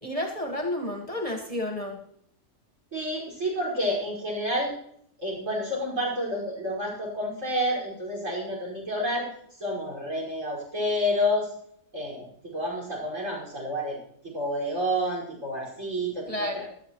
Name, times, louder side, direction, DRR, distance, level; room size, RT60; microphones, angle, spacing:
voice 1, 0.0-2.0 16.3-16.7, left 1 dB, 25° left, 1 dB, 1.5 m, -31 dB
voice 2, 2.9-4.7 5.2-9.3 9.6-11.5 11.9-14.0 14.2-16.6, equal, 65° right, -3 dB, 5.8 m, -29 dB
17.5 x 12.0 x 3.1 m, 0.68 s
omnidirectional pair, 1.4 m